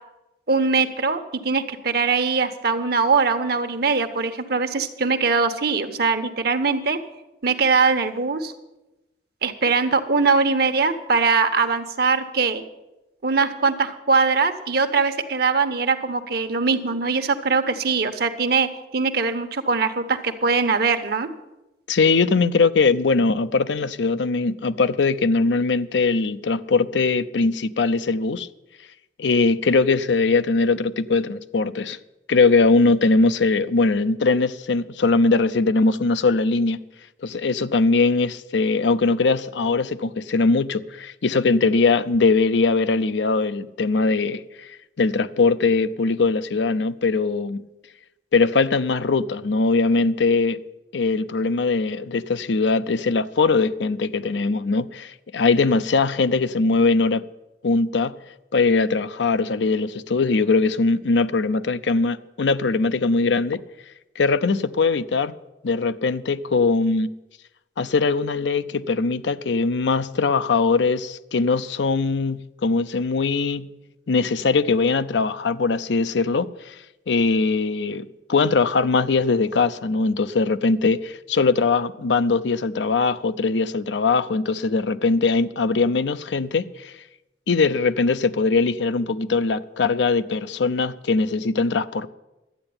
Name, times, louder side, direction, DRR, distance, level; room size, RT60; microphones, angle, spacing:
voice 1, 0.5-7.0 7.4-8.5 9.4-12.6 13.2-21.3, right 4 dB, 65° right, 1.1 m, -21 dB
voice 2, 21.9-28.5 29.2-32.0 32.3-36.8 37.2-47.6 48.3-50.6 50.9-57.2 57.6-58.1 58.5-63.6 64.2-65.3 65.6-67.1 67.8-73.7 74.1-76.8 77.1-86.9 87.5-92.1, left 4 dB, 90° left, 0.6 m, -21 dB
12.5 x 8.8 x 8.7 m
head